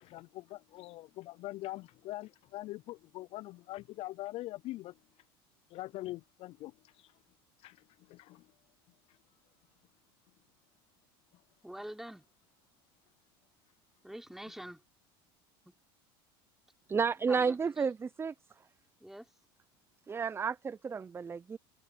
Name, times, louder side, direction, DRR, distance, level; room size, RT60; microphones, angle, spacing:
voice 1, 0.0-4.9 5.7-6.7 7.0-7.1 7.6-7.8 8.1-8.4, left 17 dB, 50° left, 0.4 m, -43 dB
voice 2, 11.6-12.2 14.0-14.8 15.7-15.8 17.2-17.9 19.0-19.3, right 1 dB, 5° right, 3.8 m, -45 dB
voice 3, 16.9-18.3 20.1-21.6, right 5 dB, 20° right, 0.6 m, -31 dB
supercardioid pair, 95°, 12 cm